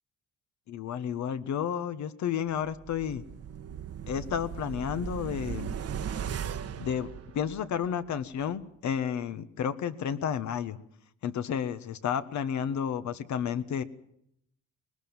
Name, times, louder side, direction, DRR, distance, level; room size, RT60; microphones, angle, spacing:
voice 1, 0.7-3.2 4.1-5.7 6.8-7.1 7.3-10.8 11.2-13.8, left 8 dB, 70° left, 12 dB, 1.4 m, -31 dB
sound 1, 2.6-7.9 8.2-8.3, right 8 dB, 55° right, 1.1 m, -38 dB
21.5 x 20.0 x 7.3 m, 0.74 s
cardioid pair, 90°, 30 cm